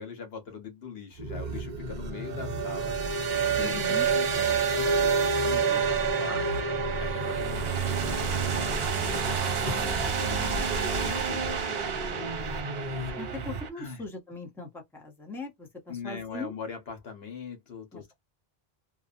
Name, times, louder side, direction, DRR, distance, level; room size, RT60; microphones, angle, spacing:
voice 1, 0.0-2.9 3.4-6.5 7.0-12.3 12.6-13.2 13.7-14.0 15.9-18.1, left 6 dB, 75° left, 1.2 m, -42 dB
sound 1, 1.2-13.6, equal, 40° right, 1.0 m, -39 dB
sound 2, 1.3-13.7, right 5 dB, 70° right, 1.0 m, -28 dB
voice 2, 3.6-4.1 13.2-16.5 17.9-18.1, left 3 dB, ahead, 0.7 m, -40 dB
2.7 x 2.3 x 2.5 m
omnidirectional pair, 1.1 m